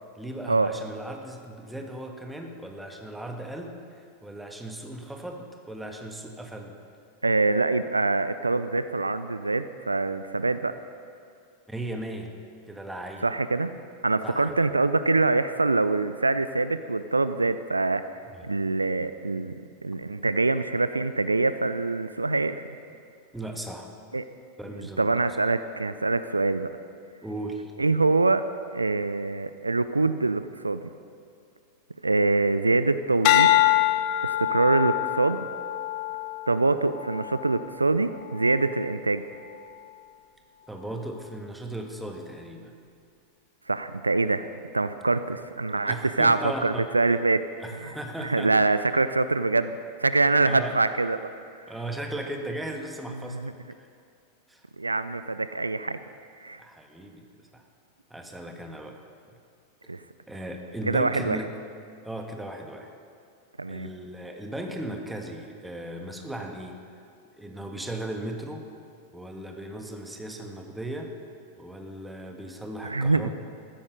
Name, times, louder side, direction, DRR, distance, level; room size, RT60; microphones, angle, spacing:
voice 1, 0.1-6.8 11.7-12.3 12.7-13.3 14.2-14.7 23.3-23.9 24.6-25.1 27.2-27.7 40.7-42.7 45.8-46.9 47.6-48.5 50.4-50.8 51.7-53.9 54.5-54.6 56.6-57.6 58.1-59.0 60.3-61.6 62.0-62.9 63.7-66.8 67.4-68.7 69.1-71.1 71.6-73.3, right 1 dB, 5° right, 3 dB, 1.5 m, -37 dB
voice 2, 7.2-10.8 13.2-13.7 14.0-18.0 18.4-19.5 19.8-22.6 24.1-24.2 25.0-26.7 27.8-28.5 28.7-30.8 32.0-33.6 34.2-35.5 36.5-39.2 43.7-44.5 44.7-47.4 47.8-47.9 48.2-51.3 53.3-53.5 54.8-56.0 56.4-56.6 59.9-60.0 60.9-61.4 63.6-63.9 72.8-73.3, right 3 dB, 80° right, 12 dB, 0.4 m, -24 dB
sound 1, 33.2-37.7 38.3-38.7, left 14 dB, 45° left, 0.7 m, -25 dB
15.0 x 13.0 x 5.3 m, 2.3 s
figure-of-eight pair, 90°, 0 cm